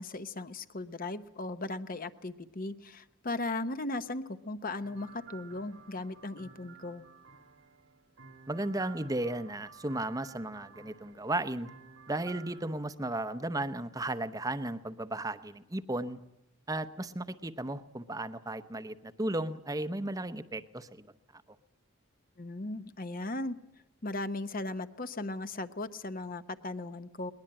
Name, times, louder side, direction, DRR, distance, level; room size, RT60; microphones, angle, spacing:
voice 1, 0.0-7.0 22.4-23.6 24.0-27.3, left 2 dB, 40° left, 11 dB, 0.9 m, -37 dB
sound 1, 4.8-12.7, right 5 dB, 85° right, 2.0 m, -53 dB
voice 2, 8.5-11.7 12.1-16.2 16.7-21.1 21.3-21.4, right 1 dB, 15° right, 11 dB, 0.8 m, -35 dB
21.5 x 20.0 x 8.8 m, 0.86 s
head